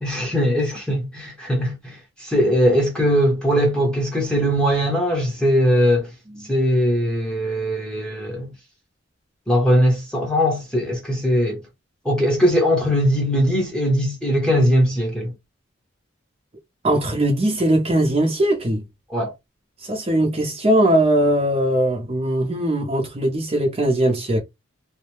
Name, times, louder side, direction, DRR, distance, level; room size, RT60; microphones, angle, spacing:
voice 1, 0.0-6.1 6.5-8.5 9.5-11.6 12.0-15.3 19.1-19.3, equal, 5° left, 0.8 m, -20 dB
voice 2, 16.8-18.8 19.8-24.4, right 1 dB, 30° right, 0.6 m, -20 dB
2.6 x 2.0 x 3.0 m
head